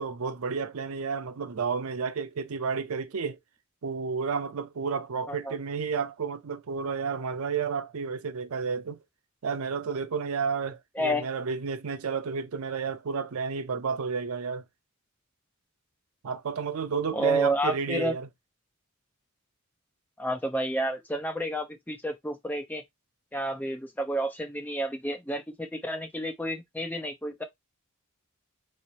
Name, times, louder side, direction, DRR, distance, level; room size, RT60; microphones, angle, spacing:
voice 1, 0.0-3.4 3.8-9.0 9.4-14.6 16.2-18.3, right 5 dB, 80° right, 0.5 m, -31 dB
voice 2, 11.0-11.3 17.1-18.1 20.2-22.8 23.3-27.4, right 1 dB, 10° left, 0.6 m, -30 dB
3.7 x 3.1 x 2.7 m
head